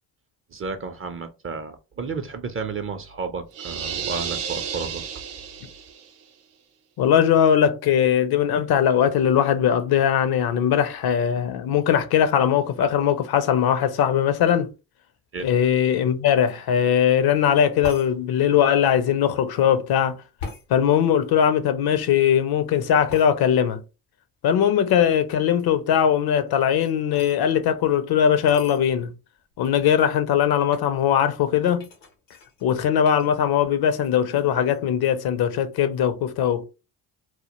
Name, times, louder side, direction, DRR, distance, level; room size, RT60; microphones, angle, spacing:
voice 1, 0.5-5.0 15.3-15.5, right 4 dB, 30° right, 0.4 m, -32 dB
sound 1, 3.5-6.1, right 7 dB, 80° right, 0.7 m, -32 dB
voice 2, 7.0-14.7 15.4-20.2 20.7-23.8 24.4-29.1 29.6-31.9 32.6-36.7, left 9 dB, 50° left, 0.5 m, -20 dB
sound 2, 17.8-18.1 20.4-20.7 23.1-23.3 26.4-27.4 28.5-28.8 29.5-29.6 29.8-30.2 30.7-30.9 31.8-33.3 33.6-34.0 34.3-34.8, left 4 dB, 90° left, 0.7 m, -40 dB
2.1 x 2.1 x 2.8 m
hypercardioid pair, 45°, 49 cm